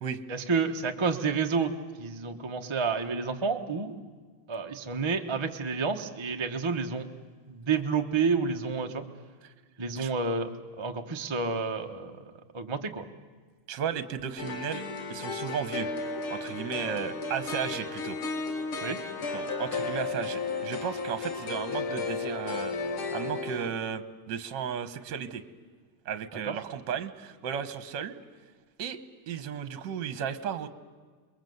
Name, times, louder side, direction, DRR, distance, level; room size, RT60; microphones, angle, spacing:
voice 1, 0.3-1.7 2.0-3.9 4.5-7.1 7.5-9.0 9.8-10.5 10.8-12.2 12.5-13.0 18.8-19.0 26.5-26.6, right 5 dB, 20° right, 4 dB, 0.8 m, -29 dB
voice 2, 13.7-15.9 16.3-18.2 19.3-22.7 23.1-25.4 26.1-28.2 28.8-29.0 29.3-30.7, right 7 dB, 60° right, 11 dB, 1.6 m, -34 dB
sound 1, 14.4-23.7, left 4 dB, 75° left, 2.7 m, -34 dB
28.0 x 22.0 x 7.9 m, 1.5 s
omnidirectional pair, 2.4 m